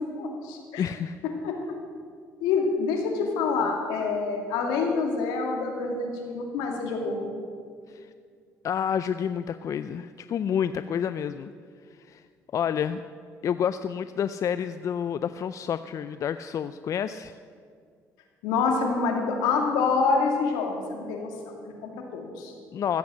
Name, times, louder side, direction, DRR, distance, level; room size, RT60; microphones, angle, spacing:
voice 1, 0.2-0.8 1.4-1.8 2.4-7.2 18.4-22.5, left 4 dB, 85° left, 2 dB, 2.3 m, -27 dB
voice 2, 0.8-1.2 7.9-8.1 8.6-11.5 12.1-12.2 12.5-13.0 13.4-17.3 22.7-23.0, left 8 dB, 50° left, 12 dB, 0.4 m, -29 dB
15.0 x 8.0 x 7.4 m, 2.1 s
supercardioid pair, 70°, 7 cm